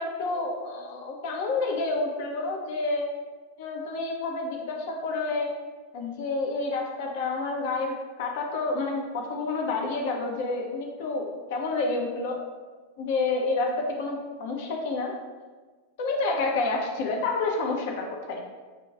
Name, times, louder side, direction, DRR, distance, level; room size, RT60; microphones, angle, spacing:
voice 1, 0.0-3.1 3.6-5.5 5.9-12.4 13.0-15.1 16.0-18.4, left 3 dB, 50° left, 1 dB, 0.5 m, -29 dB
6.6 x 2.2 x 2.3 m, 1.4 s
figure-of-eight pair, 90°, 0 cm